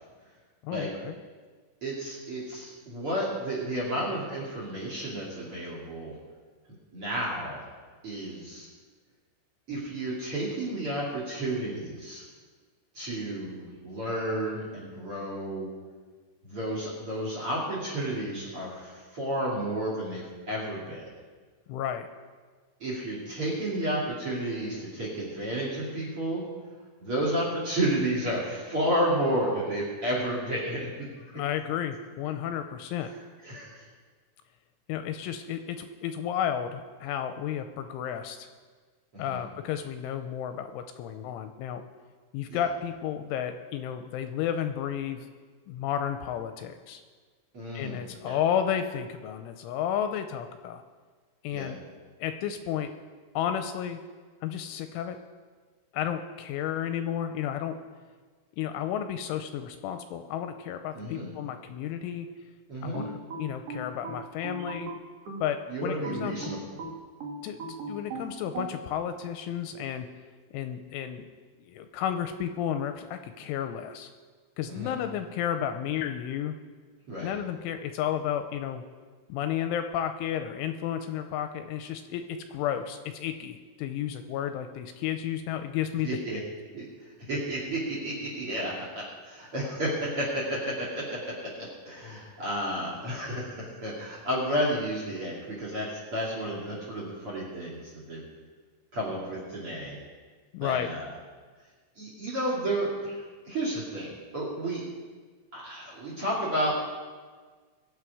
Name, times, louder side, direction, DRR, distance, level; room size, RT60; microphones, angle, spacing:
voice 1, 0.6-1.1 21.7-22.1 31.3-33.1 34.9-38.5 39.2-41.8 42.3-45.3 45.7-47.0 47.7-50.8 51.4-51.8 52.2-52.9 53.4-54.0 54.4-55.2 55.9-57.7 58.6-62.3 62.8-64.9 65.4-66.5 67.4-67.6 67.9-70.1 70.5-71.3 71.7-74.1 74.6-76.6 77.2-78.8 79.3-82.2 82.5-86.2 100.5-100.9, left 9 dB, 85° left, 8 dB, 2.9 m, -32 dB
voice 2, 1.8-6.2 6.9-7.6 8.0-8.7 9.7-12.2 12.9-15.7 16.4-21.0 22.8-26.5 27.0-31.1 33.4-33.8 39.1-39.4 42.5-42.6 47.5-48.0 48.2-48.4 51.5-51.7 60.9-61.3 62.7-63.0 65.7-66.8 74.7-75.0 77.1-77.3 86.0-86.4 86.7-98.2 98.9-100.0 100.6-101.1 102.0-104.8 105.5-106.7, right 1 dB, 35° right, -2 dB, 2.5 m, -32 dB
sound 1, 62.9-65.5 66.0-68.7, right 2 dB, 75° right, 1.4 m, -38 dB
22.0 x 8.3 x 4.8 m, 1.5 s
omnidirectional pair, 5.8 m